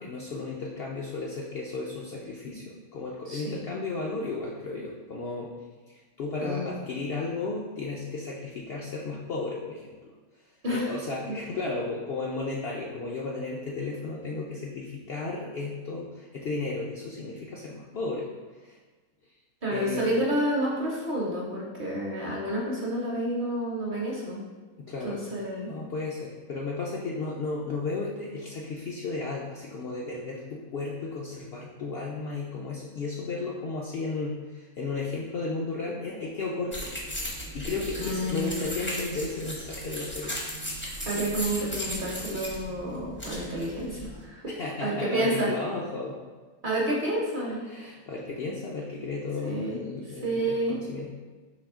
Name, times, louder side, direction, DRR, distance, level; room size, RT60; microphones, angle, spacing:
voice 1, 0.0-5.5 6.2-10.1 10.7-18.3 18.6-18.8 19.7-20.1 24.8-25.2 25.7-36.9 37.5-40.3 44.5-46.2 47.7-51.1, left 3 dB, 65° left, -3 dB, 0.6 m, -34 dB
voice 2, 3.3-3.6 6.4-6.7 10.6-10.9 11.3-11.4 19.6-24.4 25.0-25.8 38.0-38.6 41.1-44.5 44.8-45.5 46.6-47.7 49.4-49.8 50.2-50.8, right 1 dB, 45° right, -4 dB, 0.8 m, -29 dB
sound 1, 36.7-44.2, equal, 15° left, 0.5 m, -36 dB
4.9 x 3.1 x 3.5 m, 1.3 s
omnidirectional pair, 1.5 m